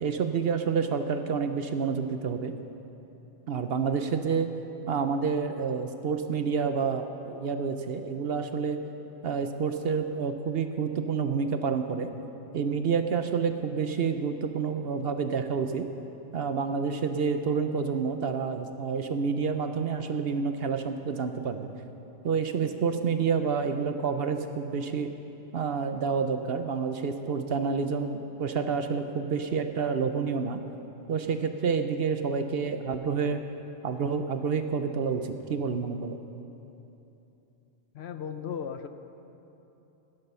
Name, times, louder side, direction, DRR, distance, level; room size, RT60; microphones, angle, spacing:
voice 1, 0.0-2.5 3.5-4.5 4.9-8.8 9.2-12.1 12.5-15.9 16.3-21.7 22.2-25.1 25.5-30.6 31.1-33.4 33.8-36.2, right 5 dB, 55° right, 8 dB, 0.8 m, -28 dB
voice 2, 37.9-38.9, left 7 dB, 60° left, 9 dB, 0.8 m, -36 dB
18.0 x 11.0 x 5.6 m, 3.0 s
omnidirectional pair, 1.3 m